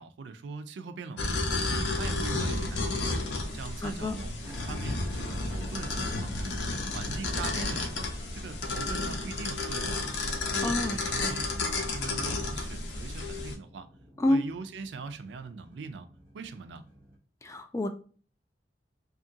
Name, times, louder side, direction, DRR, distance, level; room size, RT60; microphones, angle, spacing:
voice 1, 0.0-1.6 1.9-3.1 3.5-4.3 4.7-6.5 6.9-8.1 8.3-10.1 10.5-13.9 14.3-16.1 16.3-16.8, right 4 dB, 80° right, 0.4 m, -41 dB
sound 1, 1.2-13.6, left 2 dB, 80° left, 0.6 m, -32 dB
sound 2, 1.6-17.2, left 1 dB, 15° right, 0.8 m, -50 dB
voice 2, 3.8-4.2 10.6-11.0 14.2-14.4 17.4-17.9, left 1 dB, 15° left, 0.3 m, -28 dB
2.8 x 2.4 x 2.6 m
head